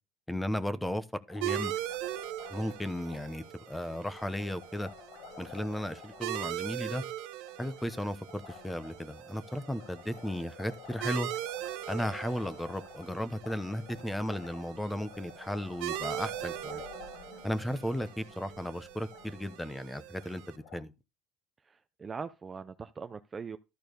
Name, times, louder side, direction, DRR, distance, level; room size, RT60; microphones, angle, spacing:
voice 1, 0.3-1.7 2.5-4.9 5.4-7.0 7.6-11.3 11.9-16.8 17.4-20.9, equal, 5° left, 0.9 m, -35 dB
Liquid, 1.3-20.8, left 5 dB, 70° left, 3.4 m, -51 dB
sound 1, 1.4-20.6, right 14 dB, 75° right, 0.8 m, -41 dB
voice 2, 21.7-23.6, right 5 dB, 20° right, 0.5 m, -41 dB
12.5 x 4.5 x 5.2 m
cardioid pair, 135°, 0 cm